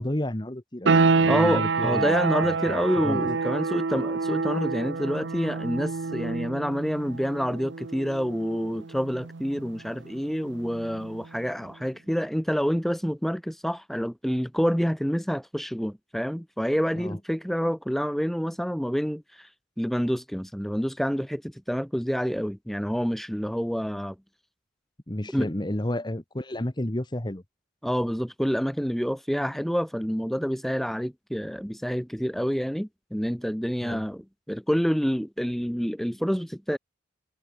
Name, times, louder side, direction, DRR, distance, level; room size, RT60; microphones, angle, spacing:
voice 1, 0.0-3.3 17.0-17.2 25.1-27.4 33.8-34.0, left 1 dB, 20° left, 1.3 m, -31 dB
sound 1, 0.9-11.4, right 4 dB, 65° right, 0.7 m, -28 dB
voice 2, 1.2-19.5 19.8-24.1 25.3-25.5 27.8-34.2 34.5-36.8, equal, ahead, 1.3 m, -28 dB
head